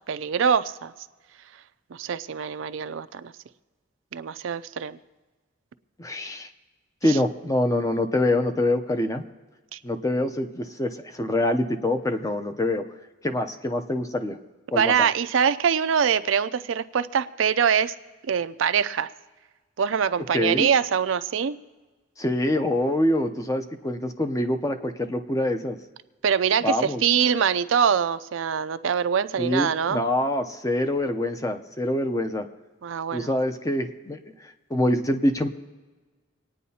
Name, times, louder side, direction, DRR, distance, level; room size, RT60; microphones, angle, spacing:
voice 1, 0.1-0.9 1.9-3.3 4.1-5.0 7.1-7.2 9.7-9.8 14.8-17.9 18.3-19.1 19.8-21.6 26.2-30.0 32.8-33.3, right 7 dB, 75° right, 13 dB, 0.4 m, -24 dB
voice 2, 6.0-6.5 7.0-9.2 9.8-12.8 13.2-14.4 14.7-15.1 20.3-20.7 22.2-25.8 26.6-27.0 29.4-32.5 33.1-35.5, left 1 dB, 15° left, 7 dB, 0.6 m, -25 dB
26.0 x 9.3 x 2.8 m, 1.3 s
head